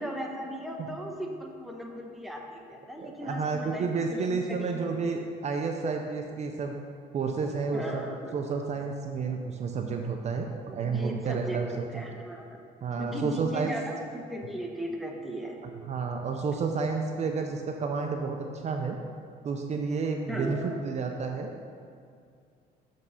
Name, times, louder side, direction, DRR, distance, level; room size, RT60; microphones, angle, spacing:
voice 1, 0.0-4.8 7.7-8.3 10.6-12.6 13.0-15.6 20.3-20.8, equal, ahead, 0 dB, 0.9 m, -37 dB
voice 2, 3.0-6.8 7.1-8.0 8.3-11.7 11.9-12.0 12.8-13.7 15.9-18.4 18.6-19.0 19.4-21.6, right 4 dB, 40° right, 3 dB, 0.6 m, -31 dB
6.5 x 5.3 x 5.5 m, 2.3 s
cardioid pair, 110°, 17 cm